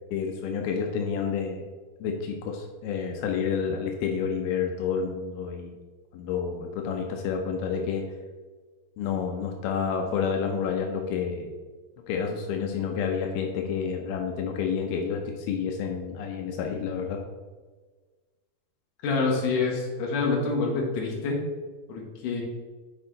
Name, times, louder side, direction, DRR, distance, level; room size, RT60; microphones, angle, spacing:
voice 1, 0.1-1.6 2.0-5.8 6.1-8.0 9.0-11.5 12.1-17.2, left 6 dB, 85° left, 2 dB, 2.5 m, -29 dB
voice 2, 19.0-21.4 21.9-22.4, left 4 dB, 65° left, -1 dB, 2.5 m, -26 dB
6.4 x 5.3 x 3.8 m, 1.3 s
omnidirectional pair, 4.4 m